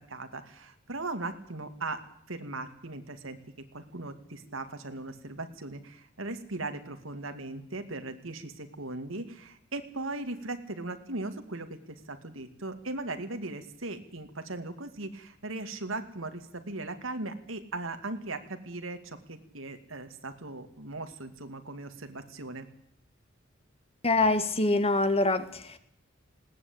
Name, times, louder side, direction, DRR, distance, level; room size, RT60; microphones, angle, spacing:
voice 1, 0.1-2.0 2.3-3.4 3.7-22.7, right 2 dB, 85° right, 8 dB, 2.5 m, -38 dB
voice 2, 24.0-25.8, left 2 dB, 30° left, 11 dB, 1.8 m, -25 dB
20.0 x 18.0 x 8.8 m, 0.70 s
head